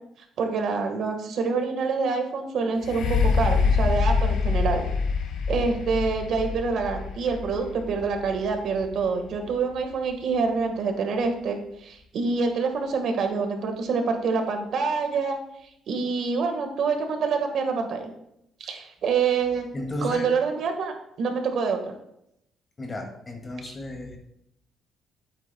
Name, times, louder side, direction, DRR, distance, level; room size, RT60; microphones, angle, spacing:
voice 1, 0.4-4.8 5.5-15.4 15.9-18.1 18.6-19.6 20.0-21.9, right 4 dB, 65° right, 5 dB, 1.5 m, -26 dB
sound 1, 2.8-10.5 11.2-11.3, left 5 dB, 75° left, 1.3 m, -26 dB
voice 2, 19.7-20.3 22.8-24.2, left 1 dB, 25° left, 2 dB, 2.1 m, -34 dB
12.0 x 8.6 x 2.3 m, 0.79 s
cardioid pair, 125°, 0 cm